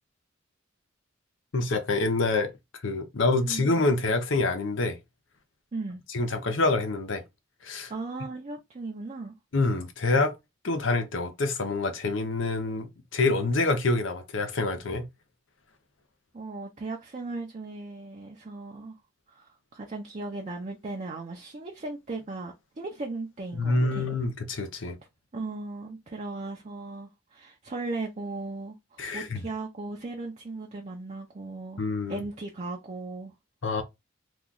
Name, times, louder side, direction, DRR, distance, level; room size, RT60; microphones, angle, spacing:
voice 1, 1.5-2.5 2.8-5.0 6.1-7.2 7.6-7.9 9.5-10.3 10.6-15.0 23.5-25.0 29.0-29.4 31.8-32.2 33.6-33.8, left 3 dB, 70° left, 0.7 m, -26 dB
voice 2, 5.7-6.0 7.9-9.3 16.3-19.0 19.3-24.1 25.3-31.8 32.1-33.3, right 3 dB, 35° right, 0.6 m, -37 dB
3.0 x 2.4 x 3.8 m
head